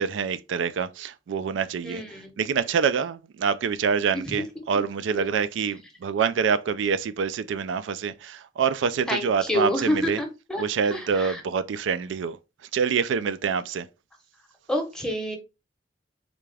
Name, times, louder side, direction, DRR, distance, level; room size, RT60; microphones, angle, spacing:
voice 1, 0.0-10.2 10.6-13.9, right 6 dB, 90° right, 0.3 m, -26 dB
voice 2, 1.8-2.3 4.1-4.2 5.1-5.2 9.1-10.6 10.9-11.4 14.7-15.4, left 1 dB, 5° left, 0.8 m, -28 dB
3.8 x 2.3 x 3.2 m
head